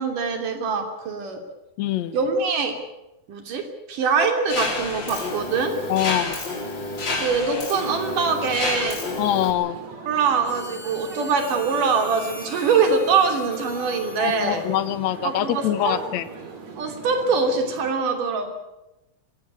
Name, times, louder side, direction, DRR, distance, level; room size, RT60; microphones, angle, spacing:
voice 1, 0.0-1.4 2.1-2.8 3.3-5.8 7.2-9.0 10.1-14.6 15.2-16.0 16.8-18.5, right 5 dB, 85° right, 6 dB, 4.6 m, -23 dB
voice 2, 1.8-2.2 5.9-6.3 9.2-9.8 14.2-16.3, left 12 dB, 65° left, 14 dB, 2.2 m, -24 dB
Mechanisms, 4.5-9.5, left 2 dB, 35° left, 4.1 m, -29 dB
sound 1, 7.8-17.9, right 4 dB, 60° right, 4.3 m, -40 dB
Harmonica, 10.4-15.6, equal, 20° left, 6.1 m, -42 dB
21.5 x 16.5 x 9.8 m, 0.95 s
omnidirectional pair, 3.6 m